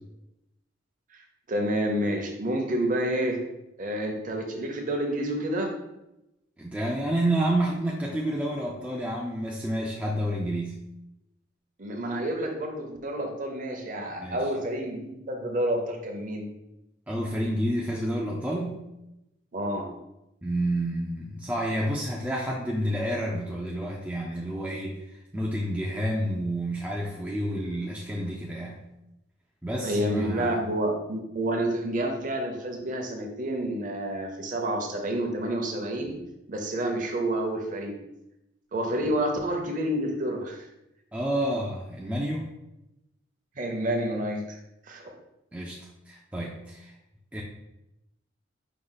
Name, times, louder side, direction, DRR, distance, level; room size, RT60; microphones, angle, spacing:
voice 1, 1.5-3.4 3.8-5.7 11.8-16.5 19.5-19.9 29.8-36.2 36.5-38.0 38.7-40.6 43.6-44.6 44.9-45.1, right 1 dB, 40° right, 2 dB, 0.6 m, -29 dB
voice 2, 6.6-10.8 14.1-14.5 17.1-18.9 20.4-28.9 29.6-30.6 41.1-42.5 45.5-46.9 47.3-47.4, right 1 dB, 5° right, -2 dB, 0.3 m, -29 dB
4.8 x 2.3 x 3.9 m, 0.90 s
head